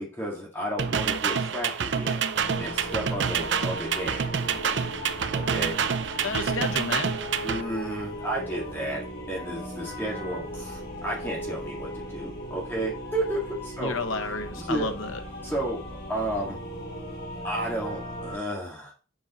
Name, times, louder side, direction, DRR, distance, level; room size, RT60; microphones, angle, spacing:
voice 1, 0.0-2.2 2.6-4.3 5.3-5.8 7.4-9.0 9.3-14.0 14.6-14.9 15.4-15.8 16.1-16.6 17.4-18.9, right 1 dB, 10° left, -3 dB, 1.8 m, -32 dB
sound 1, 0.8-7.6, right 6 dB, 65° right, 0.6 m, -27 dB
sound 2, 2.4-18.4, equal, 50° left, 2.9 m, -38 dB
voice 2, 6.2-7.1 13.8-15.2, left 4 dB, 90° left, 8 dB, 1.1 m, -31 dB
6.9 x 5.2 x 4.1 m, 0.35 s
head